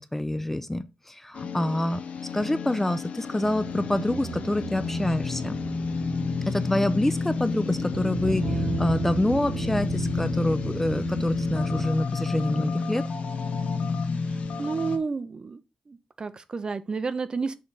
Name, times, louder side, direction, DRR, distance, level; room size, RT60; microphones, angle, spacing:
voice 1, 0.0-2.0 2.3-5.6 6.5-13.0, left 1 dB, 10° left, 0.5 m, -27 dB
sound 1, 1.3-15.0, left 4 dB, 75° left, 0.7 m, -30 dB
sound 2, 3.4-11.9, right 8 dB, 80° right, 0.6 m, -36 dB
voice 2, 14.2-15.6 15.9-17.5, right 4 dB, 40° right, 0.5 m, -31 dB
6.4 x 3.4 x 5.5 m
wide cardioid pair, 100°, 2 cm